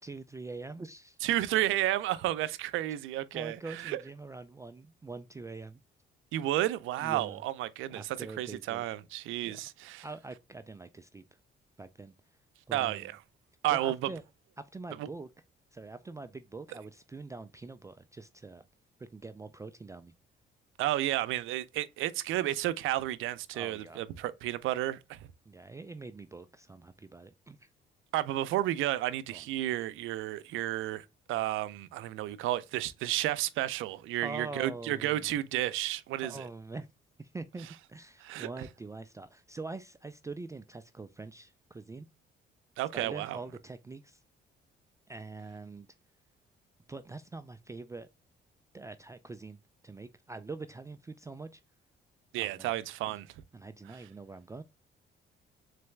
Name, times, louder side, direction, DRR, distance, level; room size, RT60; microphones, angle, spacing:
voice 1, 0.0-1.2 3.3-5.8 7.0-7.4 7.9-8.8 9.4-9.7 10.0-11.2 11.8-12.1 12.7-13.1 13.7-14.2 14.6-15.3 15.7-18.6 19.0-20.1 23.5-24.0 25.5-27.7 29.3-29.4 34.2-35.3 36.2-36.9 37.2-42.1 42.9-44.2 45.1-45.9 46.9-48.1 48.7-51.6 52.4-52.7 53.1-53.2 53.5-54.6, right 3 dB, 15° right, 0.3 m, -44 dB
voice 2, 1.2-4.0 6.3-10.1 12.7-13.2 13.6-14.0 20.8-25.2 28.1-36.5 38.2-38.5 42.8-43.4 52.3-53.3 53.9-54.0, right 14 dB, 90° right, 0.5 m, -32 dB
3.9 x 3.3 x 3.2 m
cardioid pair, 90°, 20 cm